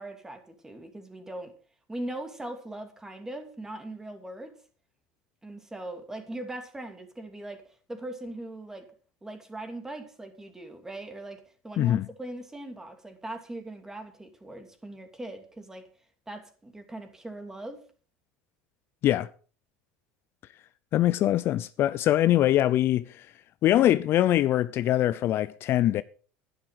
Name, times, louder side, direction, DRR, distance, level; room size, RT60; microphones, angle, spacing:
voice 1, 0.0-1.5 1.9-4.5 5.4-7.6 7.9-8.9 9.2-15.8 16.3-17.8, right 1 dB, 10° right, 2.8 m, -40 dB
voice 2, 20.9-23.3 23.6-26.0, left 13 dB, 45° left, 0.6 m, -23 dB
11.0 x 11.0 x 5.8 m
supercardioid pair, 120°, 6 cm